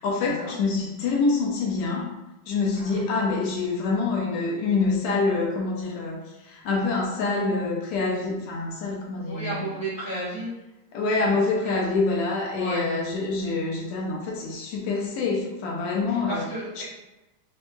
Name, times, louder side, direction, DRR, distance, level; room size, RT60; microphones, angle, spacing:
voice 1, 0.0-2.1 2.5-9.7 10.9-16.5 16.8-16.9, left 3 dB, 75° left, -1 dB, 1.8 m, -26 dB
voice 2, 9.3-10.5 11.2-11.3 11.6-11.8 12.5-12.9 16.3-16.8, right 2 dB, 80° right, -11 dB, 0.7 m, -33 dB
6.2 x 2.7 x 2.2 m, 1.0 s
omnidirectional pair, 3.5 m